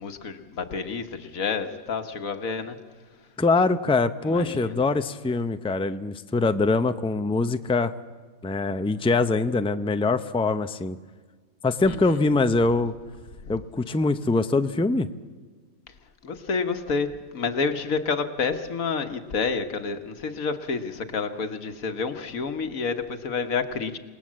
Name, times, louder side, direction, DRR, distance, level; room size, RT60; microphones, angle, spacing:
voice 1, 0.0-2.8 4.2-4.8 11.9-12.2 13.4-13.6 16.2-24.0, left 5 dB, 70° left, 7 dB, 1.6 m, -29 dB
voice 2, 3.4-7.9 8.4-11.0 11.6-12.9 13.5-15.1, left 3 dB, 10° left, 10 dB, 0.3 m, -23 dB
28.0 x 19.0 x 7.5 m, 1.4 s
omnidirectional pair, 1.5 m